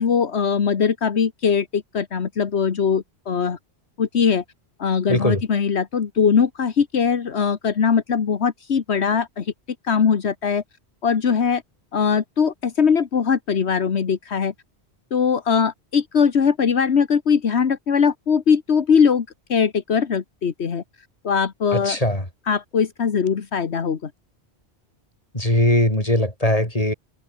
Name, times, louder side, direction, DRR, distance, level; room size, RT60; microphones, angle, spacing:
voice 1, 0.0-3.6 4.0-4.4 4.8-9.5 9.8-10.6 11.0-11.6 11.9-14.5 15.1-20.8 21.2-22.0 22.5-24.1, left 6 dB, 80° left, 1.6 m, -21 dB
voice 2, 5.1-5.4 21.7-22.2 25.3-26.9, left 1 dB, 35° left, 6.8 m, -20 dB
omnidirectional pair, 1.1 m